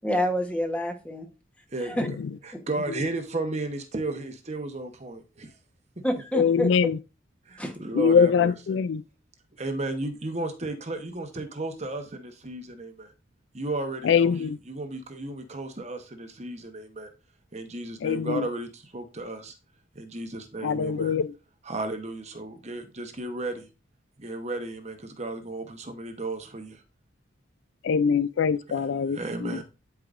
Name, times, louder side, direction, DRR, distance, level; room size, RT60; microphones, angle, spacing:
voice 1, 0.0-1.3 1.8-2.1 6.0-6.7 7.6-7.8, equal, 5° left, 1.1 m, -27 dB
voice 2, 2.4-5.5 6.0-6.1 7.5-8.8 9.6-13.1 13.5-17.1 17.5-19.5 19.9-21.2 21.6-23.7 24.2-26.8 28.7-29.6, right 2 dB, 35° right, 1.0 m, -34 dB
voice 3, 6.3-7.0 7.9-9.0 14.0-14.6 18.0-18.5 20.6-21.3 27.8-29.6, left 6 dB, 65° left, 0.3 m, -23 dB
11.5 x 4.8 x 2.5 m
head